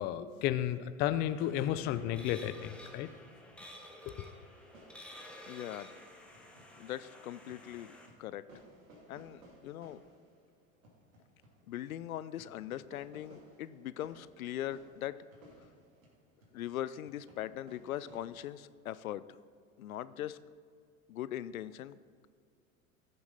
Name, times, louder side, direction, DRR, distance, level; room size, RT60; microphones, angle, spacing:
voice 1, 0.0-3.1 4.1-4.3, left 11 dB, 25° left, 13 dB, 0.4 m, -33 dB
sound 1, 1.3-8.1, left 1 dB, 5° left, 1.3 m, -52 dB
sound 2, 4.6-7.1 7.4-18.2, right 1 dB, 75° right, 2.8 m, -60 dB
voice 2, 5.5-5.9 6.8-8.4 9.1-10.0 11.7-15.2 16.5-19.2 19.8-20.4 21.1-22.0, left 12 dB, 80° left, 16 dB, 0.5 m, -40 dB
15.0 x 6.8 x 4.0 m, 2.1 s
hypercardioid pair, 90°, 41 cm